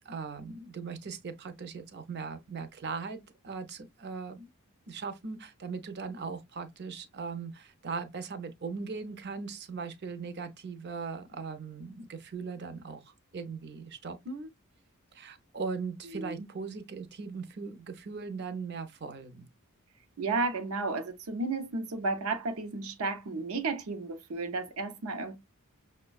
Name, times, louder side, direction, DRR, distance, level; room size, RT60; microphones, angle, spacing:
voice 1, 0.1-4.5 4.9-14.5 15.1-19.5, right 5 dB, 50° right, 0.6 m, -39 dB
voice 2, 16.0-16.5 20.2-25.4, right 3 dB, 90° right, 0.6 m, -33 dB
6.0 x 2.2 x 2.3 m
head